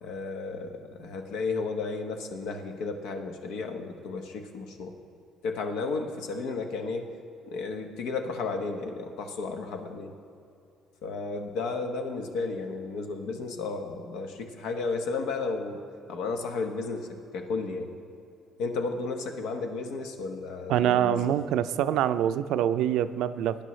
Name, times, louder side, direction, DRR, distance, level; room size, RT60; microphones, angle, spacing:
voice 1, 0.0-4.9 5.4-7.1 7.4-10.1 11.0-15.8 16.1-17.9 18.6-21.3, left 4 dB, 90° left, 4 dB, 1.1 m, -33 dB
voice 2, 20.7-23.6, right 11 dB, 80° right, 12 dB, 0.4 m, -25 dB
19.0 x 10.0 x 3.2 m, 2.6 s
cardioid pair, 125°, 0 cm